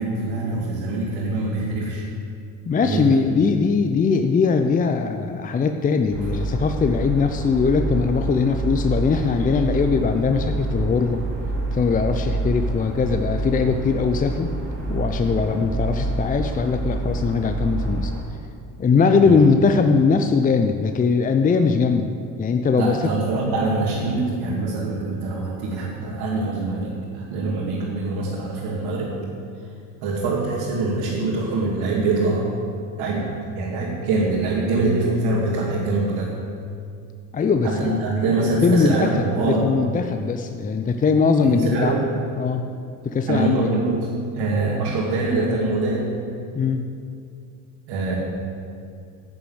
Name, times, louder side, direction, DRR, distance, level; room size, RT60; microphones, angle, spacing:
voice 1, 0.0-2.0 2.8-3.2 12.0-12.1 19.2-19.5 22.8-29.2 30.0-32.5 33.0-36.3 37.6-39.7 41.4-42.1 43.3-46.1 47.9-48.1, right 3 dB, 70° right, -5 dB, 2.4 m, -24 dB
voice 2, 2.7-11.2 11.7-14.5 14.9-18.1 18.8-22.1 22.4-23.0 37.3-38.0 38.6-39.1 39.4-42.0 42.4-42.7 43.0-43.7 46.6-46.8, left 5 dB, 20° left, 7 dB, 0.6 m, -20 dB
sound 1, 6.1-18.2, right 2 dB, 25° right, 3.3 m, -27 dB
10.5 x 7.1 x 7.8 m, 2.4 s
supercardioid pair, 90°, 39 cm